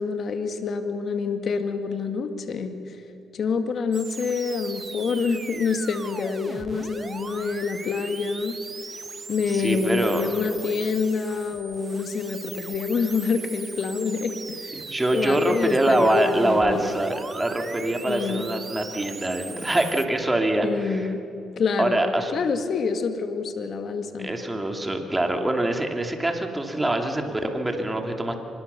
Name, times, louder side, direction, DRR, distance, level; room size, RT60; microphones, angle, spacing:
voice 1, 0.0-3.0 3.3-8.6 9.3-14.8 15.1-17.0 18.0-18.5 20.6-21.3 21.6-24.3, left 5 dB, 55° left, 7 dB, 2.2 m, -27 dB
sound 1, 3.9-20.1, right 4 dB, 35° right, 1.3 m, -39 dB
voice 2, 9.5-10.2 14.8-21.1 21.8-22.3 24.2-28.3, right 1 dB, 15° right, 4 dB, 2.7 m, -24 dB
24.5 x 20.5 x 7.0 m, 2.8 s
cardioid pair, 90°, 0 cm